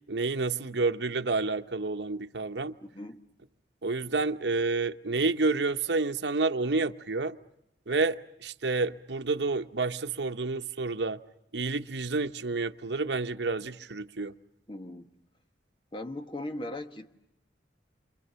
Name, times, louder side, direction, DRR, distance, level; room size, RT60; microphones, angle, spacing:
voice 1, 0.1-2.7 3.8-7.4 7.9-11.2 11.5-14.3, right 3 dB, 70° right, 1.0 m, -29 dB
voice 2, 2.8-3.2 14.7-15.1 15.9-17.1, left 1 dB, 25° left, 1.4 m, -38 dB
29.0 x 26.0 x 6.9 m
head